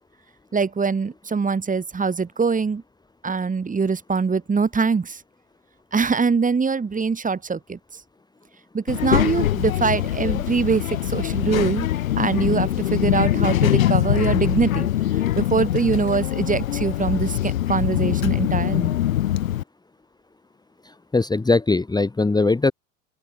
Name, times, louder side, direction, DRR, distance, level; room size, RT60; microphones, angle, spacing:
voice 1, 0.5-2.8 3.2-5.1 5.9-7.8 8.7-11.9 12.2-14.9 15.4-18.9, right 5 dB, 20° right, 4.2 m, -23 dB
Child speech kid speaking, 8.9-19.6, left 12 dB, 85° left, 3.3 m, -23 dB
voice 2, 20.8-22.7, left 3 dB, 10° left, 1.8 m, -20 dB
open air
hypercardioid pair, 90°, 39 cm